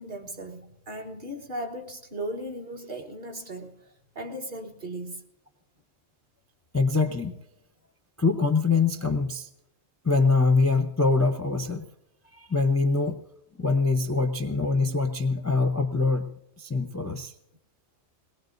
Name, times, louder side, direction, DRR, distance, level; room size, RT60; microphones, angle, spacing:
voice 1, 0.0-5.2, right 1 dB, 40° right, 1.4 m, -37 dB
voice 2, 6.7-7.4 8.2-9.5 10.0-11.8 12.3-13.2 13.6-17.3, left 4 dB, 20° left, 0.5 m, -24 dB
21.5 x 19.0 x 2.6 m
omnidirectional pair, 1.3 m